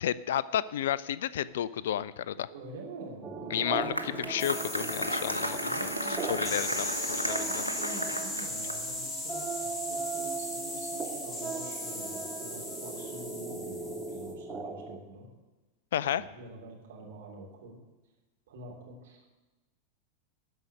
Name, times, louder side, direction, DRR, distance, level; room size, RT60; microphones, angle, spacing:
voice 1, 0.0-2.5 3.5-7.6 15.9-16.2, left 10 dB, 60° left, 18 dB, 0.4 m, -32 dB
voice 2, 2.5-4.4 5.6-6.7 7.5-15.3 16.1-17.8 18.5-19.2, right 2 dB, 55° right, -2 dB, 3.2 m, -46 dB
sound 1, 3.2-15.0, right 4 dB, 20° right, 1.0 m, -39 dB
Applause, 3.5-9.0, equal, 85° left, 0.8 m, -35 dB
sound 2, 4.4-14.3, left 1 dB, 15° left, 1.7 m, -37 dB
12.5 x 5.4 x 8.7 m, 1.1 s
figure-of-eight pair, 90°, 0 cm